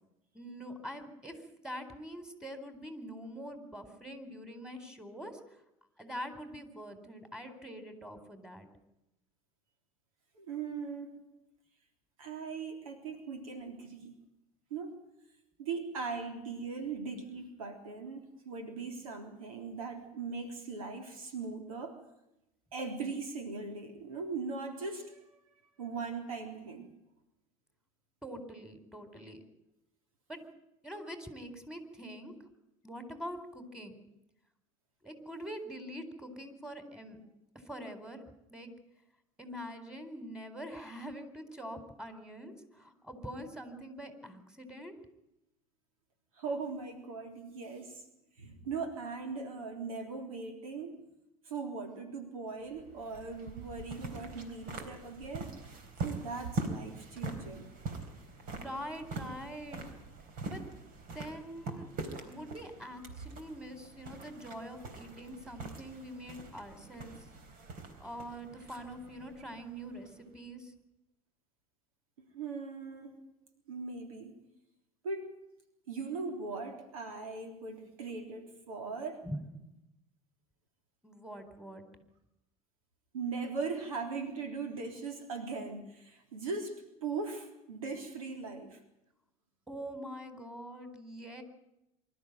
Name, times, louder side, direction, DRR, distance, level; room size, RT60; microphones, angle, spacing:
voice 1, 0.3-5.4 6.0-8.7 11.3-11.4 28.2-29.4 30.3-30.4 30.8-32.3 32.8-33.9 35.0-37.2 37.5-38.2 38.5-38.7 39.4-44.9 58.6-59.8 60.5-60.6 61.1-61.9 62.2-67.1 68.0-70.7 73.1-73.2 79.2-79.4 81.0-81.9 89.7-91.4, equal, 5° right, 8 dB, 4.3 m, -44 dB
voice 2, 10.3-11.1 12.2-14.1 14.7-14.9 15.6-22.0 22.7-25.4 25.8-26.9 46.4-48.0 48.4-51.0 51.5-55.5 56.0-57.7 72.3-73.2 73.7-74.3 75.0-75.3 75.9-79.3 83.1-88.8, right 4 dB, 80° right, 6 dB, 3.6 m, -39 dB
sound 1, 52.7-70.3, right 3 dB, 55° right, 3.8 m, -43 dB
24.5 x 13.0 x 9.1 m, 0.88 s
hypercardioid pair, 75°, 18 cm